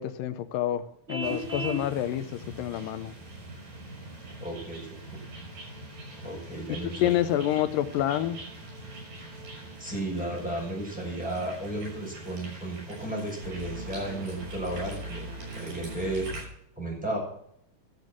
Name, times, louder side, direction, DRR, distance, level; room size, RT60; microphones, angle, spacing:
voice 1, 0.0-3.2 6.8-8.4, left 12 dB, 85° left, 12 dB, 2.4 m, -28 dB
Vehicle horn car horn honking, 1.1-1.9, right 1 dB, 70° right, 0.6 m, -33 dB
sound 1, 1.2-16.5, right 1 dB, 90° right, 7.9 m, -43 dB
sound 2, 3.2-3.4 3.7-16.4, right 1 dB, 50° right, 2.2 m, -46 dB
voice 2, 4.4-5.0 6.2-7.1 9.8-15.2 15.5-16.3 16.8-17.2, right 1 dB, ahead, -2 dB, 5.6 m, -34 dB
14.5 x 7.7 x 7.4 m, 0.71 s
omnidirectional pair, 3.8 m